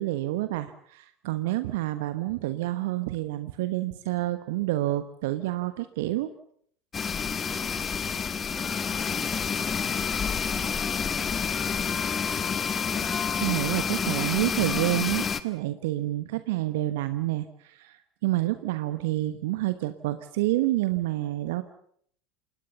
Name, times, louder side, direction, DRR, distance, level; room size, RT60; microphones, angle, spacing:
voice 1, 0.0-6.3 12.9-21.6, right 16 dB, 65° right, 11 dB, 1.1 m, -28 dB
sound 1, 6.9-15.4, left 6 dB, 25° left, 1.6 m, -28 dB
voice 2, 7.0-7.9 8.4-12.1 16.0-16.2, right 2 dB, 15° right, 6 dB, 5.8 m, -50 dB
28.5 x 19.0 x 7.0 m, 0.63 s
figure-of-eight pair, 75°, 0 cm